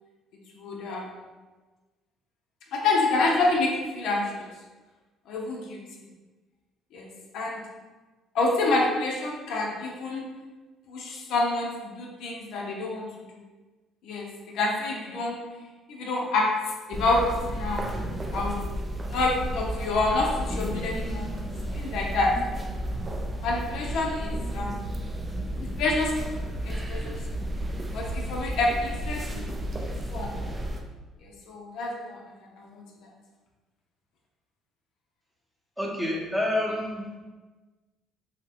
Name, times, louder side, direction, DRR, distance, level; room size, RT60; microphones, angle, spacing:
voice 1, 0.5-1.2 2.7-4.5 5.3-5.8 6.9-7.1 7.3-7.6 8.3-10.2 10.9-13.4 14.0-14.3 14.5-15.4 15.9-16.5 16.9-17.8 18.3-18.6 19.1-21.3 21.7-22.3 23.4-24.9 25.6-27.6 27.9-29.5 29.8-30.3 31.2-32.2 32.6-33.1, left 2 dB, 75° left, -1 dB, 0.5 m, -28 dB
sound 1, 16.9-30.8, right 1 dB, 25° right, 0.3 m, -32 dB
voice 2, 35.8-37.0, left 1 dB, 5° right, -3 dB, 0.7 m, -28 dB
2.8 x 2.1 x 2.7 m, 1.2 s
supercardioid pair, 80°, 0 cm